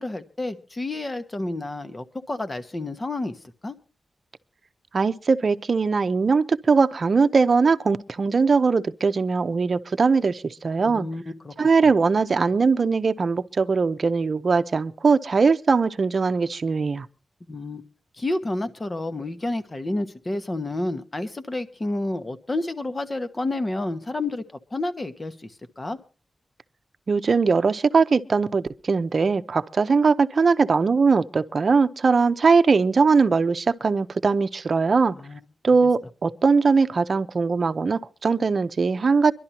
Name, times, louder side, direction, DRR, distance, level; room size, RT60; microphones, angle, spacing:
voice 1, 0.0-3.4 3.6-3.8 10.8-11.5 17.5-17.8 18.2-24.4 24.7-26.0 35.1-35.4, left 2 dB, 30° left, 1.2 m, -30 dB
voice 2, 4.9-11.1 11.6-17.1 27.1-35.2 35.6-39.3, right 4 dB, 55° right, 0.7 m, -20 dB
24.5 x 11.5 x 2.9 m
wide cardioid pair, 95°, 0 cm